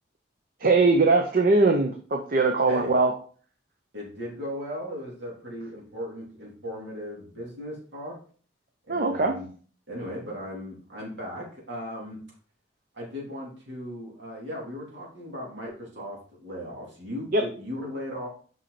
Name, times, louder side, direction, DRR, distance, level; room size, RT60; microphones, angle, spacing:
voice 1, 0.6-3.1 8.9-9.3 17.3-17.4, right 3 dB, 50° right, 4 dB, 0.7 m, -21 dB
voice 2, 3.9-8.2 8.9-9.5 9.9-12.2 12.9-18.3, equal, 65° right, -3 dB, 3.3 m, -37 dB
6.1 x 5.6 x 4.2 m, 0.43 s
head